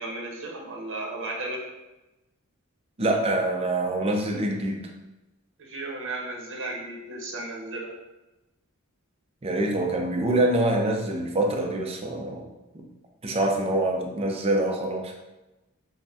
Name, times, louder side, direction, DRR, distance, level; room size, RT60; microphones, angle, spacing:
voice 1, 0.0-1.6 5.6-7.9, right 2 dB, 60° right, -1 dB, 0.9 m, -34 dB
voice 2, 3.0-4.8 9.4-12.5 12.7-12.8 13.2-15.1, right 1 dB, 25° right, 1 dB, 0.5 m, -25 dB
5.6 x 2.1 x 2.7 m, 1.0 s
head